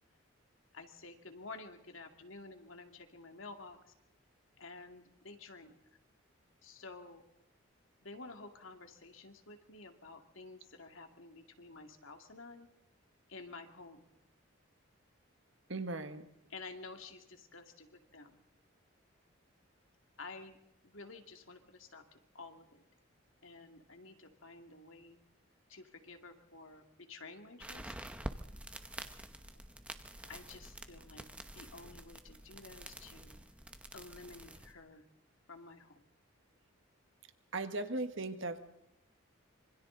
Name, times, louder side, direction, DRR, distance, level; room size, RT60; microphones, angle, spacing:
voice 1, 0.7-3.9 4.6-5.7 6.6-7.2 8.0-12.7 13.3-14.0 16.5-18.4 20.2-20.6 20.8-22.8 23.4-25.2 25.7-27.9 30.2-31.2 31.5-33.4 33.9-35.0 35.5-36.0, left 3 dB, 70° left, 5 dB, 2.4 m, -51 dB
voice 2, 15.7-16.3 37.5-38.6, right 2 dB, 65° right, 9 dB, 1.5 m, -37 dB
sound 1, 27.6-34.7, right 1 dB, 5° right, 0.9 m, -48 dB
26.5 x 25.0 x 4.0 m, 0.83 s
head